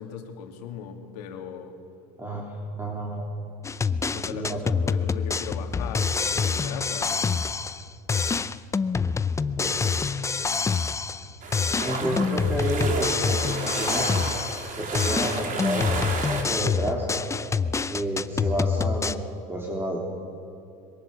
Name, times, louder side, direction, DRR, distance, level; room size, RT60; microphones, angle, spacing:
voice 1, 0.0-1.7 4.1-7.2, left 7 dB, 85° left, 4 dB, 2.8 m, -38 dB
voice 2, 2.2-3.3 4.2-4.6 9.6-10.2 11.8-14.1 14.8-17.3 17.9-20.0, right 1 dB, 10° right, -2 dB, 3.6 m, -30 dB
sound 1, 3.6-7.8 8.1-11.3 11.5-14.7 14.9-19.2, left 5 dB, 15° left, 0.6 m, -26 dB
sound 2, 11.4-16.4, right 4 dB, 40° right, 3.8 m, -32 dB
23.5 x 22.0 x 7.0 m, 2.9 s
supercardioid pair, 110°, 20 cm